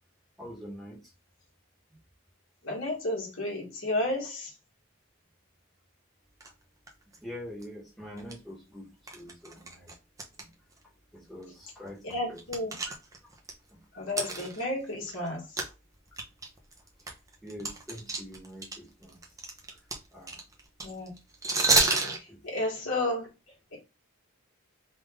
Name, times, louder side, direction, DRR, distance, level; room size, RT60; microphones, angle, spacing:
voice 1, 0.4-1.0 7.2-9.9 10.4-10.5 11.1-12.4 13.7-13.8 17.4-19.2 20.1-20.4 22.0-22.4, equal, ahead, 1.1 m, -44 dB
voice 2, 2.6-4.5 12.0-12.7 13.9-15.6 20.8-21.1 22.2-23.3 23.7-23.8, left 1 dB, 60° left, 1.5 m, -32 dB
sound 1, 6.4-6.5 6.9-7.2 7.6-7.7 8.2-8.3 9.1-10.4 10.7-10.8 11.4-11.5 11.9-13.5 14.1-15.3 15.6-15.7 16.1-18.7 19.0-22.2, right 3 dB, 15° right, 0.6 m, -29 dB
3.5 x 2.5 x 3.4 m
head